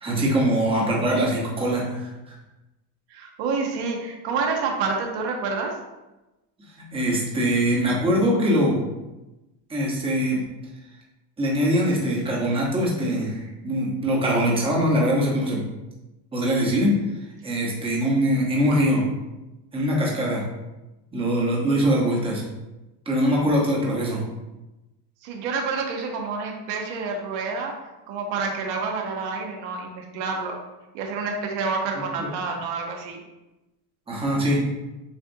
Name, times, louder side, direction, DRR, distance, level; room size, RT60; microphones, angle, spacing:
voice 1, 0.0-2.1 6.8-8.8 9.7-10.5 11.4-15.6 16.3-16.9 17.4-19.0 19.7-20.4 21.1-22.4 23.1-24.2 32.2-32.3 34.1-34.7, equal, 10° right, -4 dB, 0.9 m, -22 dB
voice 2, 3.1-5.7 25.2-27.8 28.1-30.6 30.9-33.2, right 4 dB, 70° right, 2 dB, 0.9 m, -28 dB
6.9 x 2.4 x 2.6 m, 1.0 s
cardioid pair, 140°, 46 cm